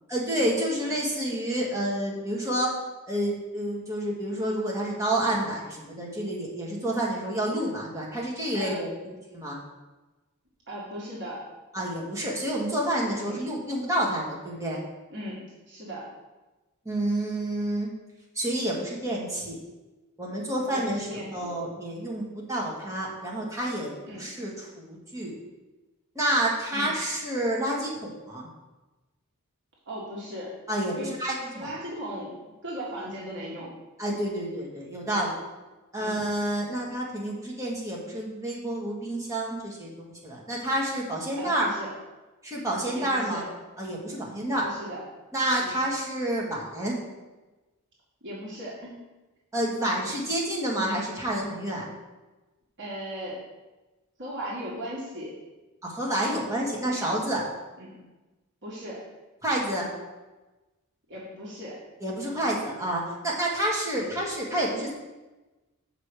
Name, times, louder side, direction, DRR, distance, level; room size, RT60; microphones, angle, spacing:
voice 1, 0.1-2.7 3.1-9.6 11.7-14.8 16.9-17.9 18.4-19.6 20.2-25.3 26.2-28.5 30.7-31.7 34.0-35.4 35.9-41.7 42.4-43.4 43.8-44.7 45.3-47.0 49.5-51.9 55.8-57.4 59.4-59.9 62.0-64.9, right 1 dB, 15° right, -4 dB, 1.9 m, -29 dB
voice 2, 8.5-8.9 10.7-11.5 13.3-13.4 15.1-16.1 20.7-21.5 24.1-24.3 26.7-26.9 29.9-30.5 30.9-31.1 31.5-32.4 32.6-33.8 36.0-36.1 41.3-41.9 42.9-43.5 44.6-45.0 45.6-45.7 48.2-49.0 52.8-53.4 54.2-55.4 57.8-58.0 58.6-59.0 61.1-61.8 64.0-64.1, equal, 55° right, -5 dB, 1.8 m, -37 dB
6.7 x 5.0 x 6.2 m, 1.1 s
head